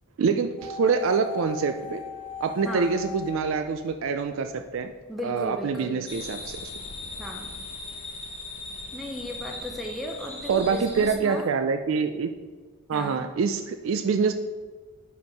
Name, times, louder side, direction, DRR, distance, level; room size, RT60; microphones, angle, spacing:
voice 1, 0.2-2.0 2.4-4.9 5.2-6.7 10.5-12.3 12.9-14.3, right 5 dB, 60° right, 7 dB, 0.3 m, -25 dB
sound 1, 0.6-4.7 4.9-5.0, left 6 dB, 20° right, 0.9 m, -39 dB
voice 2, 2.6-3.0 5.1-6.0 7.2-7.6 8.9-11.5 12.9-13.3, left 1 dB, ahead, 0 dB, 0.5 m, -36 dB
sound 2, 6.1-11.2, left 2 dB, 30° left, 1.1 m, -39 dB
5.2 x 4.6 x 5.2 m, 1.3 s
head